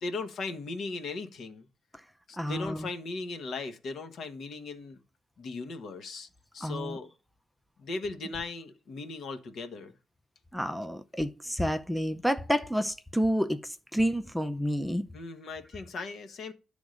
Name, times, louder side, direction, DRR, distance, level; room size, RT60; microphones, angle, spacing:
voice 1, 0.0-1.7 2.3-5.0 5.4-6.3 6.5-7.1 7.8-9.9 15.1-16.5, left 3 dB, 60° left, 1.1 m, -38 dB
voice 2, 2.4-2.9 6.6-7.0 10.5-15.0, equal, ahead, 0.6 m, -29 dB
10.5 x 3.6 x 6.3 m
cardioid pair, 90°, 0 cm